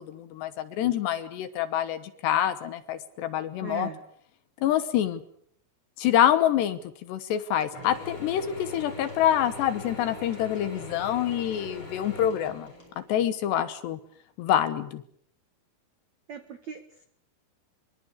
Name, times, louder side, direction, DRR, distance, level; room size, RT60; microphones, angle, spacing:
voice 1, 0.0-3.9 4.6-5.2 6.0-6.8 7.1-12.7 13.1-14.0 14.4-15.0, left 11 dB, 70° left, 12 dB, 3.0 m, -26 dB
voice 2, 3.6-4.0 16.3-17.0, right 7 dB, 75° right, 9 dB, 1.6 m, -39 dB
Mechanisms / Drill, 7.7-13.2, left 3 dB, 25° left, 7.6 m, -41 dB
24.5 x 23.5 x 8.3 m, 0.64 s
omnidirectional pair, 5.9 m